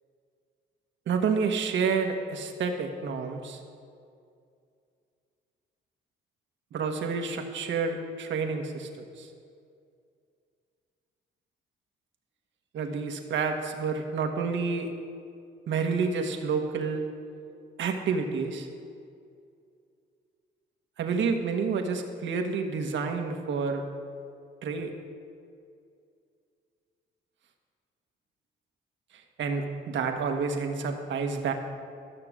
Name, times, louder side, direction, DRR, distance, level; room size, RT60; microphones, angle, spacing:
voice 1, 1.1-3.6 6.7-8.9 9.2-9.3 12.7-14.9 15.7-17.1 17.8-18.7 21.0-23.8 24.6-24.9 29.4-31.5, right 5 dB, 70° right, 4 dB, 1.4 m, -29 dB
13.0 x 6.7 x 7.4 m, 2.3 s
cardioid pair, 90°, 20 cm